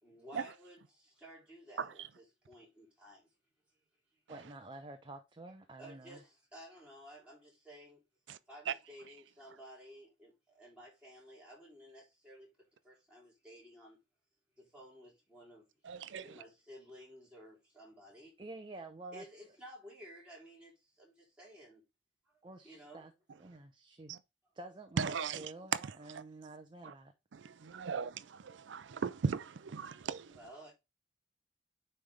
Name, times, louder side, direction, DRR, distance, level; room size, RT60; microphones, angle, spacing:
voice 1, 0.0-3.3 3.7-3.8 5.8-8.0 8.5-12.5 12.8-14.0 14.6-15.7 16.2-18.3 19.1-21.8 22.2-23.1 23.5-23.6 27.6-27.7 30.3-30.7, equal, 5° right, 3.3 m, -54 dB
voice 2, 4.3-6.2 18.4-19.2 22.4-23.1 23.4-24.1 24.5-27.1, right 2 dB, 25° right, 0.7 m, -49 dB
voice 3, 15.9-16.3 24.1-24.2 25.0-25.9 26.8-26.9 27.3-30.4, right 6 dB, 80° right, 0.5 m, -37 dB
9.3 x 3.4 x 3.5 m
head